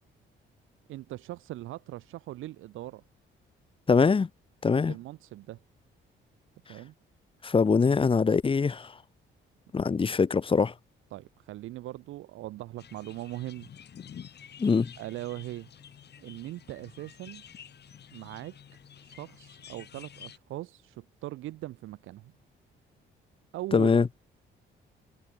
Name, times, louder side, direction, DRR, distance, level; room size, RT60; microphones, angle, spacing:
voice 1, 0.9-3.0 4.8-5.6 6.7-6.9 11.1-13.7 15.0-15.7 16.2-17.4 18.1-18.6 19.0-22.3 23.5-24.2, right 16 dB, 90° right, 2.9 m, -40 dB
voice 2, 3.9-4.3 4.6-4.9 7.4-8.9 9.7-10.7 14.6-14.9 23.7-24.1, left 5 dB, 25° left, 0.9 m, -23 dB
sound 1, 12.8-20.4, left 8 dB, 55° left, 6.0 m, -50 dB
cardioid pair, 90°, 20 cm